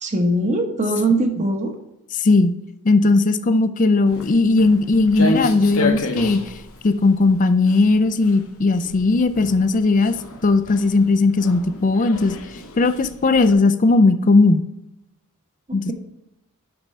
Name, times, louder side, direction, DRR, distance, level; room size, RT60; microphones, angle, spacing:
voice 1, 0.0-1.7 15.7-15.9, right 1 dB, 35° right, 4 dB, 1.1 m, -21 dB
voice 2, 2.1-2.5 2.8-6.4 6.8-10.1 10.4-12.4 12.8-14.6 15.7-15.9, left 3 dB, 35° left, 11 dB, 0.4 m, -17 dB
Walk footsteps, 4.1-13.5, left 2 dB, 70° left, 1.0 m, -31 dB
6.1 x 4.4 x 6.5 m, 0.88 s
head